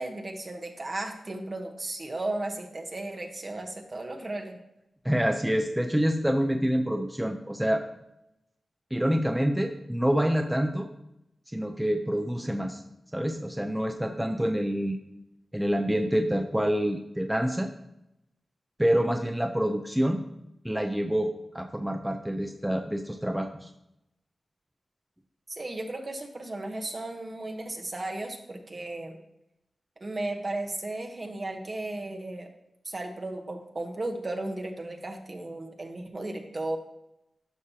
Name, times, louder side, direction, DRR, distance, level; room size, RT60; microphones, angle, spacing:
voice 1, 0.0-4.6 25.5-29.2 30.0-32.5 32.8-36.8, right 2 dB, 45° right, 3 dB, 1.1 m, -35 dB
voice 2, 5.0-7.9 8.9-10.9 11.5-12.8 13.1-15.0 15.5-17.7 18.8-20.2 20.6-23.7, equal, 5° right, 4 dB, 0.6 m, -27 dB
11.5 x 5.3 x 2.9 m, 0.84 s
cardioid pair, 50°, 0 cm